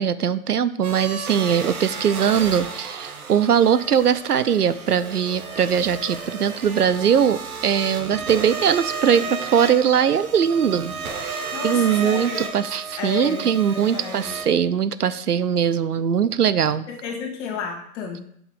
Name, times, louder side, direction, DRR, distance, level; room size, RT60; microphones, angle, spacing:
voice 1, 0.0-16.9, right 8 dB, 85° right, 15 dB, 0.7 m, -21 dB
sound 1, 0.8-14.5, right 4 dB, 70° right, 1.7 m, -33 dB
voice 2, 11.5-12.5 13.0-14.4 16.9-18.2, left 5 dB, 50° left, 2 dB, 2.5 m, -32 dB
8.1 x 5.6 x 5.1 m, 0.68 s
figure-of-eight pair, 100°, 45 cm